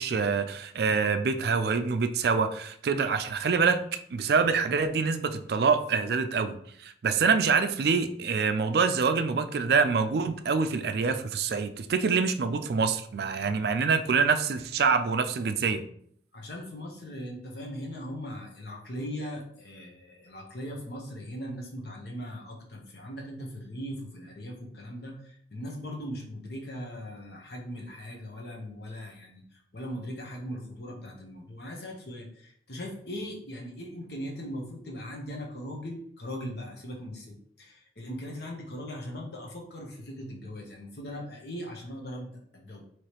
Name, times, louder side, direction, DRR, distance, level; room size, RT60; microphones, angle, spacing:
voice 1, 0.0-15.8, right 5 dB, 60° right, 9 dB, 0.4 m, -26 dB
voice 2, 16.3-42.8, equal, 60° left, 0 dB, 1.0 m, -39 dB
4.8 x 3.1 x 3.0 m, 0.64 s
head